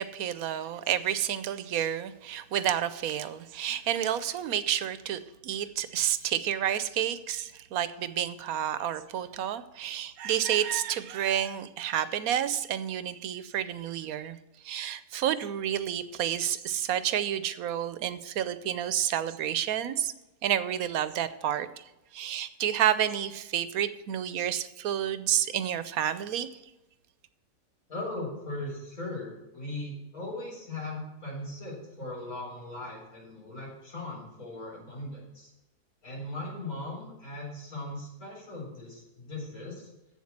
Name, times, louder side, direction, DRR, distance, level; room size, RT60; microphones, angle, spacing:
voice 1, 0.0-14.4 14.6-20.1 20.4-21.8 22.1-26.5, right 10 dB, 85° right, 13 dB, 1.1 m, -30 dB
voice 2, 27.9-35.5 36.0-39.9, left 2 dB, 85° left, -5 dB, 4.9 m, -39 dB
7.8 x 7.4 x 7.3 m, 0.97 s
omnidirectional pair, 1.5 m